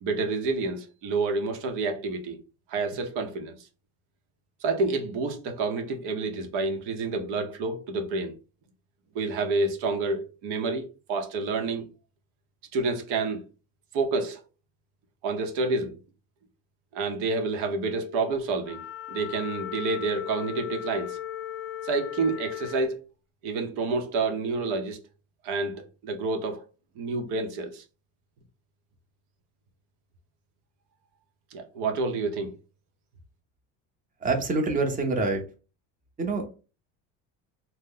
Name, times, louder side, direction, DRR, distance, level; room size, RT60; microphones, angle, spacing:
voice 1, 0.0-2.4 2.7-3.6 4.6-8.3 9.1-11.8 12.7-13.4 13.9-14.4 15.2-15.9 16.9-18.8 19.1-21.2 21.8-23.0 23.4-25.0 25.4-26.6 27.0-27.8 31.5-32.5, right 3 dB, 75° right, 0.8 m, -28 dB
Wind instrument woodwind instrument, 18.6-22.9, left 11 dB, 30° left, 0.4 m, -37 dB
voice 2, 34.2-35.4 36.2-36.4, right 3 dB, 20° right, 0.7 m, -26 dB
2.8 x 2.1 x 3.7 m
cardioid pair, 115°, 41 cm